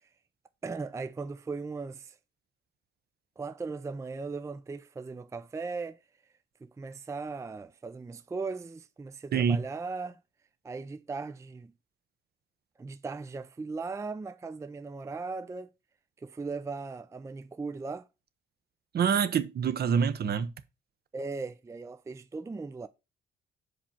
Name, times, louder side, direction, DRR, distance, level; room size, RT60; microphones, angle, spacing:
voice 1, 0.6-2.2 3.4-6.0 6.6-10.2 10.6-11.7 12.8-15.7 16.2-18.1 21.1-22.9, right 4 dB, 15° right, 0.4 m, -38 dB
voice 2, 9.3-9.6 18.9-20.5, right 7 dB, 55° right, 0.7 m, -26 dB
5.1 x 4.5 x 5.5 m
cardioid pair, 90°, 20 cm